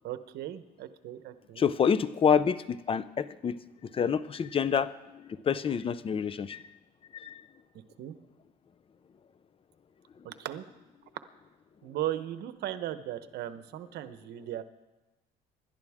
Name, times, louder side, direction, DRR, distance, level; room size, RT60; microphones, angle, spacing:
voice 1, 0.0-1.6 8.0-8.1 10.2-10.6 11.8-14.6, right 13 dB, 75° right, 11 dB, 1.0 m, -37 dB
voice 2, 1.6-4.9 5.3-6.6 7.1-7.4, left 7 dB, 35° left, 15 dB, 0.6 m, -28 dB
27.0 x 12.0 x 3.6 m, 1.0 s
cardioid pair, 110°, 17 cm